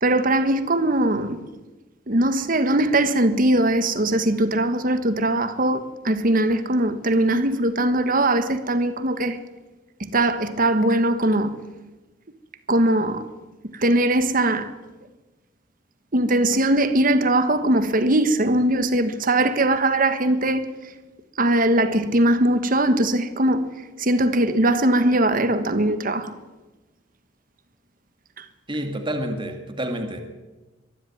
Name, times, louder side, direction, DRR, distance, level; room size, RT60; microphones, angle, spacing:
voice 1, 0.0-1.4 2.1-9.4 10.0-11.6 12.7-13.3 13.6-14.7 16.1-20.7 21.4-23.7 24.0-26.3 28.4-28.5, right 1 dB, 50° right, 1.5 m, -20 dB
voice 2, 28.7-30.2, right 1 dB, 30° right, 2.0 m, -28 dB
23.5 x 12.0 x 9.5 m
head